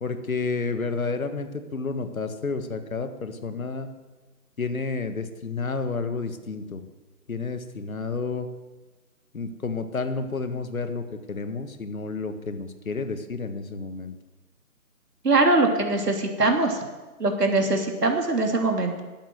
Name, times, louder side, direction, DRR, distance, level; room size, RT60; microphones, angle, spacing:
voice 1, 0.0-3.9 4.6-6.9 7.3-8.5 9.3-14.2, left 4 dB, 60° left, 9 dB, 1.7 m, -30 dB
voice 2, 15.2-16.8 17.2-19.0, right 2 dB, 85° right, 3 dB, 3.0 m, -22 dB
13.0 x 10.5 x 7.8 m, 1.2 s
figure-of-eight pair, 170°, 46 cm